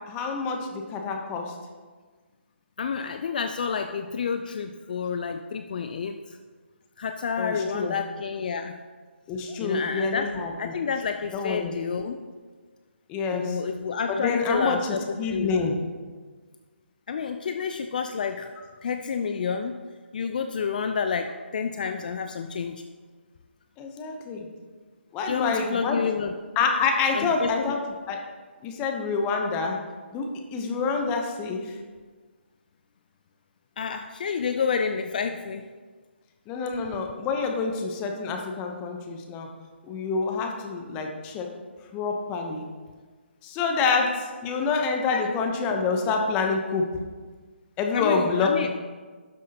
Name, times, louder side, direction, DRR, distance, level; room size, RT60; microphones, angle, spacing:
voice 1, 0.1-1.5 7.4-8.0 9.3-10.7 11.3-11.8 13.1-13.6 14.1-15.8 23.8-24.5 25.1-26.1 26.6-27.8 28.1-28.2 28.6-29.8 30.1-31.8 36.5-39.5 39.8-41.5 41.9-42.7 43.4-46.9 47.8-48.7, left 4 dB, 15° left, 3 dB, 0.8 m, -27 dB
voice 2, 2.8-6.4 7.0-8.8 9.6-10.3 10.6-12.2 13.3-15.5 17.1-18.5 18.8-19.8 20.1-22.8 25.3-26.3 27.1-27.7 33.8-35.7 45.1-45.3 47.9-48.7, left 6 dB, 45° left, 7 dB, 0.4 m, -29 dB
12.0 x 6.4 x 2.8 m, 1.5 s
figure-of-eight pair, 150°, 7 cm